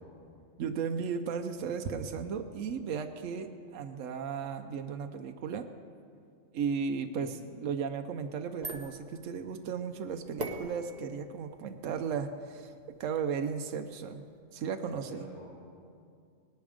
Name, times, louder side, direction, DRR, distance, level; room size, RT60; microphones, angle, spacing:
voice 1, 0.0-0.4 7.1-7.5 14.8-15.5, equal, 65° left, -6 dB, 2.7 m, -48 dB
voice 2, 0.6-5.7 6.5-12.7 13.0-14.3 14.5-15.2, right 6 dB, 80° right, 6 dB, 1.1 m, -35 dB
sound 1, 8.2-14.4, right 2 dB, 35° right, 1.3 m, -45 dB
19.0 x 10.5 x 5.1 m, 2.3 s
omnidirectional pair, 1.3 m